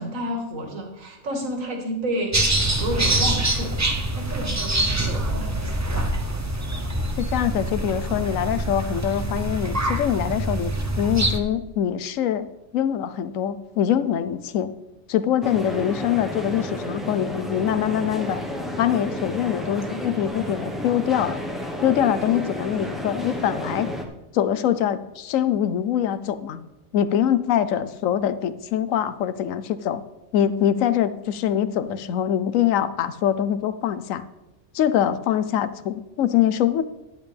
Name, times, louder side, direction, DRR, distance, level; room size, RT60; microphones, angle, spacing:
voice 1, 0.0-3.9 4.1-6.1, equal, 70° right, 2 dB, 2.1 m, -31 dB
sound 1, 2.3-11.4, right 1 dB, 25° right, 0.4 m, -25 dB
voice 2, 7.2-10.7 11.0-12.5 12.7-14.7 15.1-18.4 18.8-21.4 21.8-23.9 24.3-26.6 26.9-30.0 30.3-34.2 34.7-36.8, left 10 dB, 75° left, 14 dB, 1.0 m, -23 dB
sound 2, 15.4-24.1, equal, ahead, 0.9 m, -31 dB
10.5 x 10.5 x 3.4 m, 0.96 s
omnidirectional pair, 1.4 m